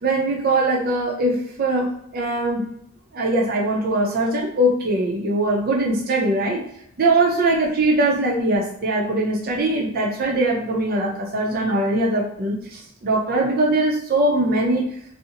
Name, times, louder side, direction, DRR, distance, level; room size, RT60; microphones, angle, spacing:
voice 1, 0.0-2.7 3.1-6.6 7.0-14.8, right 2 dB, 50° right, -2 dB, 0.5 m, -21 dB
2.5 x 2.0 x 2.7 m, 0.71 s
head